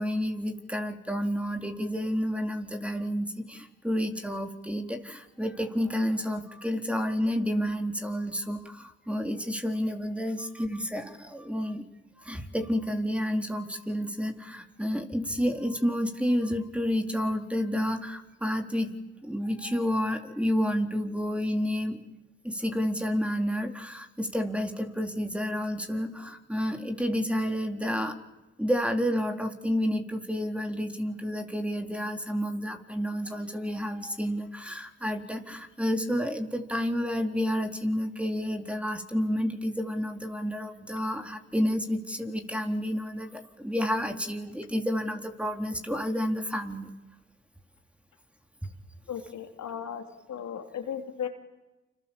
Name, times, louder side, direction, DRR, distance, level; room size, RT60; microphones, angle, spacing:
voice 1, 0.0-11.8 12.2-18.9 19.2-22.0 22.4-28.2 28.6-46.9, equal, 5° right, 4 dB, 4.2 m, -30 dB
voice 2, 49.1-50.0 50.3-51.3, left 8 dB, 70° left, 4 dB, 3.4 m, -35 dB
29.0 x 27.5 x 7.5 m, 1.1 s
hypercardioid pair, 45°, 30 cm